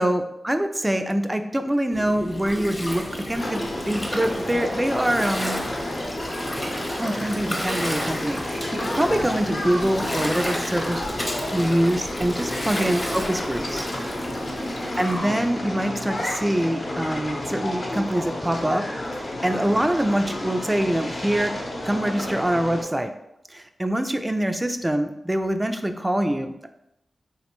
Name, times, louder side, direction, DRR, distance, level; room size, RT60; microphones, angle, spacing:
voice 1, 0.0-5.6 7.0-11.1 11.5-13.8 15.0-18.8 19.1-21.5 21.8-23.1 23.5-26.7, right 1 dB, 15° right, 7 dB, 0.3 m, -24 dB
Gurgling, 1.9-15.2, equal, 20° left, 0.8 m, -32 dB
sound 1, 3.3-22.8, left 1 dB, 55° left, 0.8 m, -31 dB
3.3 x 2.1 x 2.9 m, 0.83 s
cardioid pair, 40°, 0 cm